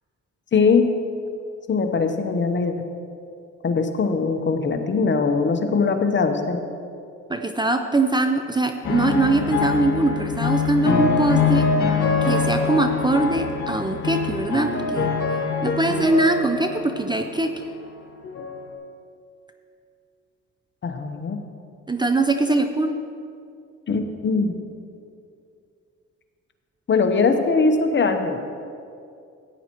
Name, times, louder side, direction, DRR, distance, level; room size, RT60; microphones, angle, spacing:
voice 1, 0.5-0.9 1.7-2.7 3.6-6.6 20.8-21.4 23.9-24.5 26.9-28.4, left 4 dB, 40° left, 6 dB, 0.9 m, -21 dB
voice 2, 7.3-11.7 12.3-15.1 15.6-17.5 21.9-22.9, right 2 dB, 15° right, 6 dB, 0.5 m, -22 dB
sound 1, 8.8-17.4 18.2-18.7, left 5 dB, 75° left, 1.9 m, -24 dB
14.0 x 9.5 x 3.0 m, 2.4 s
cardioid pair, 90°, 30 cm